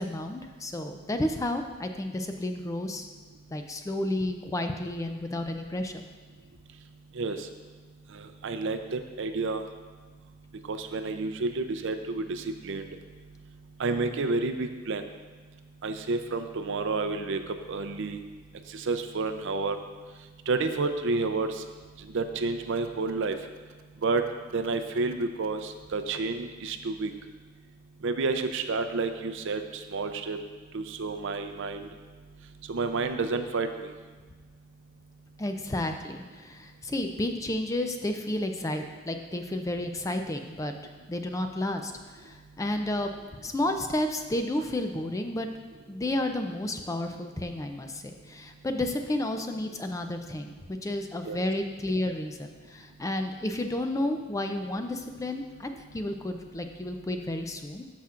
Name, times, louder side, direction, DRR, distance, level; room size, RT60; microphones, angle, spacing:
voice 1, 0.0-3.1 3.5-6.0 35.4-40.7 41.1-41.9 42.2-43.1 43.4-45.5 45.9-50.5 50.8-57.8, left 1 dB, 15° left, 6 dB, 0.4 m, -31 dB
voice 2, 8.1-9.6 10.7-12.8 13.8-15.0 15.8-17.4 17.7-18.2 18.7-19.8 20.5-21.5 22.1-23.4 24.0-24.2 24.5-27.1 28.0-29.6 29.9-30.4 30.7-31.9 32.7-33.9 51.2-51.4, right 3 dB, 60° right, 8 dB, 0.5 m, -30 dB
13.0 x 5.8 x 2.5 m, 1.4 s
head